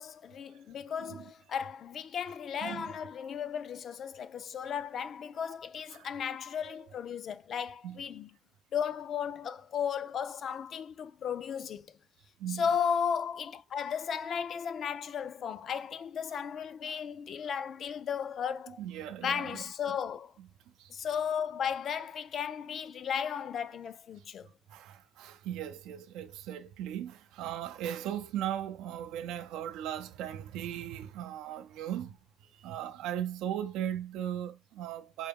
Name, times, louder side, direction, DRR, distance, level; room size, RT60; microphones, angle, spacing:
voice 1, 0.0-8.3 8.7-11.9 12.5-18.8 19.2-20.3 20.9-24.5, left 7 dB, 50° left, 0.4 m, -35 dB
voice 2, 2.6-2.9 5.9-6.1 6.6-6.8 7.8-8.0 12.4-12.7 16.9-17.0 18.8-19.6 20.8-20.9 24.7-32.2 32.6-35.3, right 11 dB, 85° right, 0.4 m, -38 dB
4.5 x 2.3 x 3.4 m
cardioid pair, 105°, 0 cm